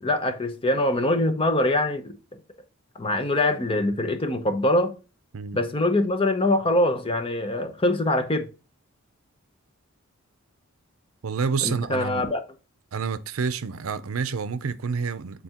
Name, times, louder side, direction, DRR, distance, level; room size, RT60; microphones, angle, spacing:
voice 1, 0.0-2.2 2.9-5.0 5.5-8.5 11.6-12.4, left 1 dB, 25° left, 0.8 m, -23 dB
voice 2, 11.2-12.3 12.9-15.4, right 5 dB, 75° right, 0.6 m, -28 dB
7.7 x 4.2 x 2.9 m
head